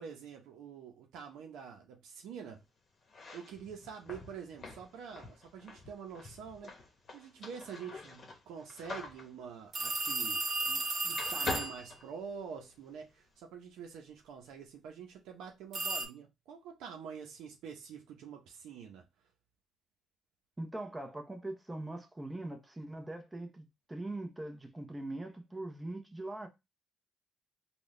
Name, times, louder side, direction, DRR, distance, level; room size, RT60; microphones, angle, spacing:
voice 1, 0.0-2.6 3.3-6.8 7.1-19.1, right 7 dB, 90° right, 0.7 m, -46 dB
sound 1, 3.0-10.8 11.1-12.8, left 3 dB, 45° left, 0.9 m, -45 dB
sound 2, 9.7-11.8 15.7-16.1, right 3 dB, 60° right, 1.3 m, -34 dB
voice 2, 20.6-26.5, right 2 dB, 15° right, 0.8 m, -41 dB
3.8 x 2.3 x 3.1 m
cardioid pair, 90°, 0 cm